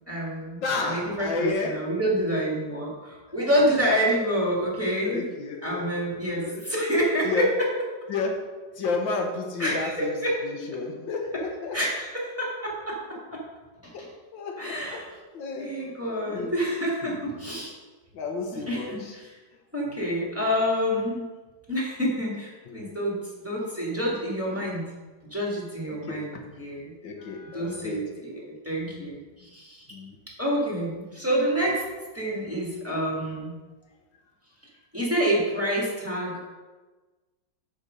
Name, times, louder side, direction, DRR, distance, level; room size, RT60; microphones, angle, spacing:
voice 1, 0.1-5.3 5.6-7.7 9.6-10.4 11.7-13.4 13.8-13.9 14.6-15.1 15.6-17.7 18.5-19.3 19.7-21.3 21.7-24.9 25.3-26.9 27.5-29.9 30.3-31.9 32.1-33.6 34.9-36.5, equal, 5° right, -5 dB, 1.9 m, -28 dB
voice 2, 0.6-1.8 3.3-3.6 5.0-6.0 6.3-6.6 7.3-7.5 8.1-8.4 8.8-10.1 10.4-11.8 13.9-14.1 14.3-15.0 15.3-15.7 16.3-16.5 17.0-17.2 18.1-19.1 19.8-20.1 22.7-23.0 25.9-26.4 27.0-28.2 28.9-29.1 29.9-30.2, left 3 dB, 80° left, 3 dB, 1.8 m, -32 dB
12.5 x 4.4 x 5.2 m, 1.3 s
omnidirectional pair, 2.0 m